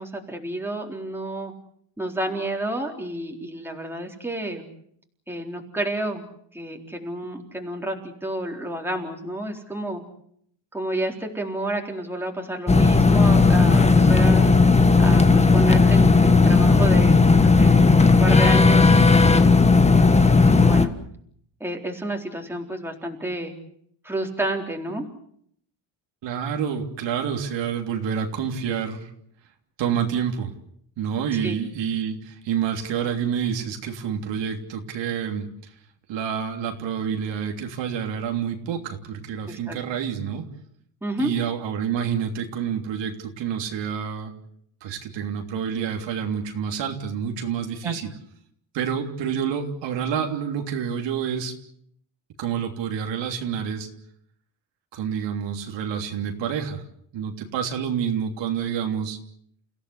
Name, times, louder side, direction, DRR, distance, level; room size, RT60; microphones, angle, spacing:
voice 1, 0.0-1.5 2.0-4.6 5.3-6.2 6.5-10.0 10.7-14.5 15.0-19.5 20.1-20.9 21.6-23.5 24.0-25.1 31.3-31.6 39.5-39.8 41.0-41.3 47.8-47.9, right 1 dB, 5° right, 1 dB, 4.1 m, -30 dB
sound 1, 12.7-20.9, left 4 dB, 15° left, 1.6 m, -15 dB
voice 2, 26.2-29.1 29.8-30.5 31.0-35.5 36.1-40.4 41.2-44.3 44.8-48.1 48.7-51.5 52.4-53.9 54.9-56.8 57.1-59.2, right 8 dB, 75° right, 4 dB, 3.3 m, -28 dB
30.0 x 16.5 x 8.3 m, 0.68 s
cardioid pair, 125°, 45 cm